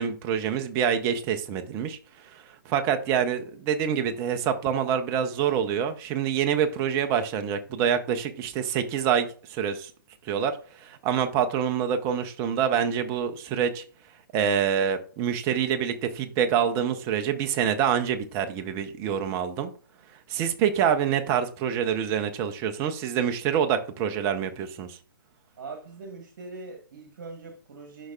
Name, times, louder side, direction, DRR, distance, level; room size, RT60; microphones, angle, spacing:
voice 1, 0.0-9.9 10.2-13.8 14.3-19.7 20.3-25.0, right 8 dB, 25° right, 8 dB, 0.8 m, -26 dB
voice 2, 25.6-28.1, right 3 dB, 55° right, 3 dB, 1.4 m, -41 dB
11.5 x 5.0 x 2.4 m, 0.41 s
figure-of-eight pair, 130°, 12 cm